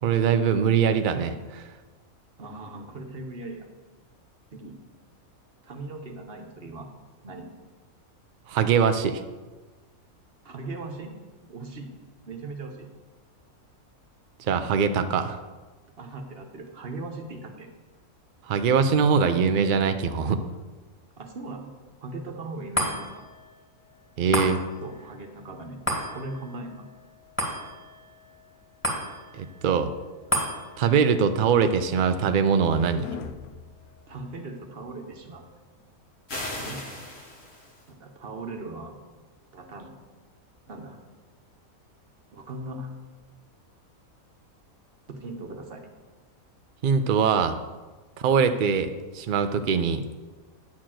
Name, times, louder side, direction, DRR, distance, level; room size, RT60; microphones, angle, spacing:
voice 1, 0.0-1.7 8.5-9.2 14.5-15.4 18.5-20.4 24.2-24.6 29.3-29.9 30.8-33.1 46.8-47.6 48.2-50.1, right 6 dB, 85° right, 9 dB, 0.4 m, -22 dB
voice 2, 2.4-3.7 4.5-4.8 5.6-6.9 7.2-7.5 10.4-11.2 11.5-11.9 12.3-12.9 16.0-17.7 21.2-21.7 22.0-23.3 24.8-25.8 26.1-26.8 34.1-35.5 36.6-36.8 37.9-39.0 39.5-39.9 40.7-41.0 42.3-42.9 45.1-45.8, right 2 dB, 45° right, 4 dB, 1.2 m, -39 dB
sound 1, 22.7-35.3 35.8-35.9, equal, 10° left, 2.4 m, -35 dB
sound 2, 31.5-34.7, left 7 dB, 85° left, 1.1 m, -43 dB
sound 3, 36.3-37.9, left 1 dB, 60° left, 1.9 m, -37 dB
9.6 x 4.5 x 7.5 m, 1.3 s
omnidirectional pair, 1.5 m